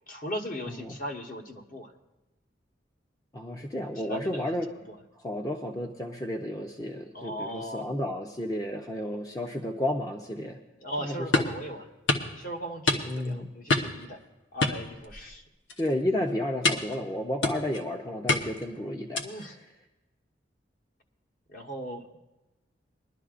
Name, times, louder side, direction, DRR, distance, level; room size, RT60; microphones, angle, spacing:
voice 1, 0.1-1.9 4.0-4.6 4.9-5.0 7.1-7.9 10.8-11.8 12.3-14.2 14.5-15.4 19.2-19.6 21.5-22.0, equal, 50° left, 2 dB, 1.2 m, -38 dB
voice 2, 3.3-4.7 5.2-10.6 11.0-11.4 13.1-13.5 15.8-19.2, left 1 dB, 20° left, 2 dB, 0.6 m, -32 dB
sound 1, 11.3-11.6 12.1-12.3 12.9-13.3 13.7-14.0 14.6-15.4 15.7-15.9 16.6-17.0 17.4-17.8 18.3-18.7 19.2-19.5, left 2 dB, 90° left, 1.1 m, -27 dB
21.5 x 11.5 x 2.5 m, 1.0 s
head